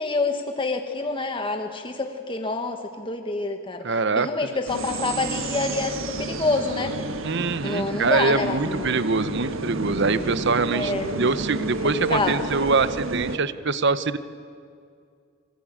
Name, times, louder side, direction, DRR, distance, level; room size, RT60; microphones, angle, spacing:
voice 1, 0.0-6.9 7.6-9.0 10.7-11.3 11.8-12.5, left 3 dB, 25° left, 5 dB, 1.3 m, -27 dB
voice 2, 3.8-4.3 7.2-10.9 11.2-14.2, right 4 dB, 60° right, 13 dB, 0.9 m, -24 dB
sound 1, 4.7-13.4, right 2 dB, 80° right, 1.6 m, -30 dB
25.5 x 22.0 x 8.9 m, 2.3 s
head